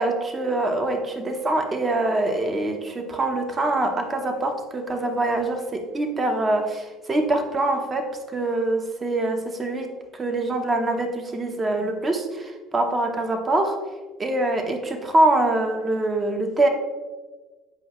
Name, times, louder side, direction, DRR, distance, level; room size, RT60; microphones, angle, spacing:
voice 1, 0.0-8.1 8.3-9.9 10.1-13.7 14.2-16.7, right 2 dB, 25° right, 5 dB, 1.0 m, -24 dB
7.8 x 5.4 x 3.1 m, 1.3 s
supercardioid pair, 100°, 0 cm